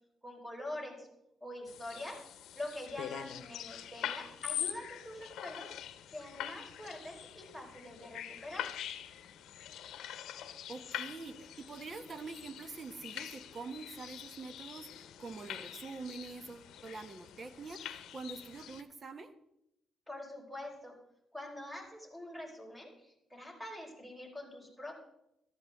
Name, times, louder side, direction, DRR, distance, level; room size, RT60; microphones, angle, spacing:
voice 1, 0.2-1.1 1.4-8.7 20.1-21.0 21.3-25.0, left 1 dB, 10° right, 0 dB, 4.3 m, -45 dB
sound 1, 1.7-18.8, left 10 dB, 80° left, 0.8 m, -44 dB
voice 2, 10.7-19.3, right 4 dB, 35° right, 10 dB, 1.1 m, -45 dB
14.0 x 12.5 x 3.6 m, 0.83 s
cardioid pair, 90°, 0 cm